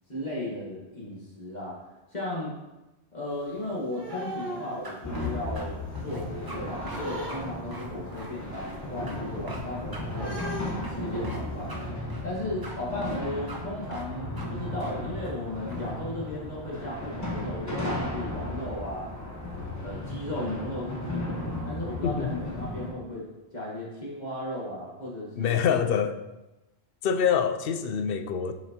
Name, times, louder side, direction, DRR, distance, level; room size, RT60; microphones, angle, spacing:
voice 1, 0.1-1.8 2.1-2.5 3.1-10.4 10.9-11.7 12.2-19.1 19.8-23.2 23.5-25.5, left 1 dB, 40° left, -5 dB, 1.6 m, -35 dB
sound 1, 3.2-5.6 5.9-7.9 8.3-8.4 8.7-11.8, right 1 dB, 90° right, 2.4 m, -39 dB
sound 2, 4.8-5.6 5.9-6.6 6.9-7.0 7.3-7.4 7.7-8.8 9.1-9.2 9.5-9.6 9.9-10.0 10.4-10.5 10.8-11.4 11.7-11.8 12.1-12.8 13.0-13.2 13.5-13.6 13.9-14.1 14.4-14.5 14.8-14.9 15.2-15.9, right 2 dB, 25° right, 0.7 m, -43 dB
sound 3, 5.0-22.9, left 1 dB, 15° left, 1.1 m, -35 dB
voice 2, 22.0-22.3 25.4-26.2 27.0-28.5, left 7 dB, 65° left, 8 dB, 0.7 m, -25 dB
7.1 x 5.9 x 2.9 m, 1.0 s
omnidirectional pair, 1.1 m